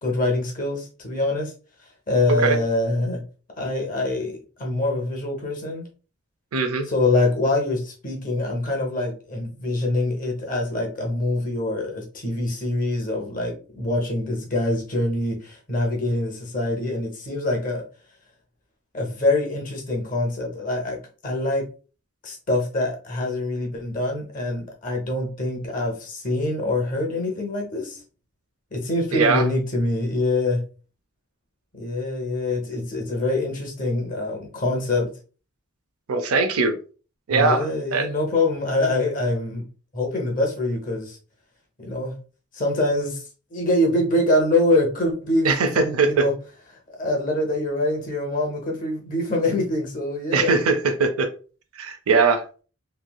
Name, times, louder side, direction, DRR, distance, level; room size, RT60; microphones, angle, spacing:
voice 1, 0.0-1.5 2.1-3.2 3.6-5.8 6.9-17.8 18.9-21.0 21.2-21.6 22.2-28.0 28.7-30.6 31.8-35.1 37.3-39.6 39.9-41.2 41.8-42.1 42.5-43.2 43.5-45.5 45.7-46.3 47.0-50.5, left 2 dB, 40° left, 1 dB, 0.8 m, -24 dB
voice 2, 6.5-6.9 29.1-29.4 36.1-36.7 37.3-38.1 45.4-46.3 50.3-51.3 51.8-52.4, right 4 dB, 90° right, 7 dB, 0.5 m, -21 dB
3.2 x 2.6 x 2.2 m, 0.37 s
head